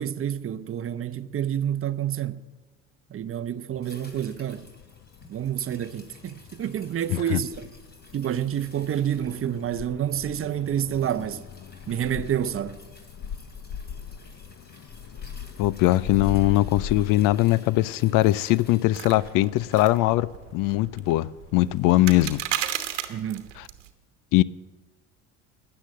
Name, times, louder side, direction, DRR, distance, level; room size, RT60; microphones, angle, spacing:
voice 1, 0.0-2.4 3.1-4.7 5.3-7.7 8.1-11.5 11.9-12.8 23.1-23.5, right 10 dB, 40° right, 0.7 m, -28 dB
sound 1, 3.7-22.4, left 7 dB, 45° left, 0.9 m, -41 dB
sound 2, 3.8-20.3 20.6-20.7, left 2 dB, 25° left, 3.2 m, -54 dB
voice 2, 7.1-7.4 15.6-22.4 24.3-24.4, left 17 dB, 65° left, 0.5 m, -21 dB
sound 3, 18.9-23.9, right 12 dB, 90° right, 1.2 m, -34 dB
13.0 x 9.7 x 7.6 m
hypercardioid pair, 70°, 36 cm